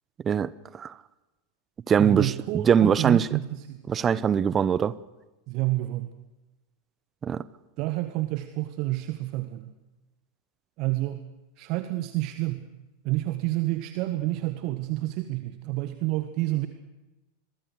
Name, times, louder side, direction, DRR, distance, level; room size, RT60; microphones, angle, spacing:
voice 1, 0.2-0.9 1.9-3.3 3.9-4.9 7.2-7.4, right 7 dB, 25° right, 19 dB, 0.9 m, -22 dB
voice 2, 2.0-3.8 5.5-6.1 7.8-9.8 10.8-11.3 11.6-12.6 13.0-16.7, right 17 dB, 40° right, 9 dB, 1.5 m, -29 dB
26.5 x 22.5 x 6.7 m, 1.1 s
figure-of-eight pair, 90°, 0 cm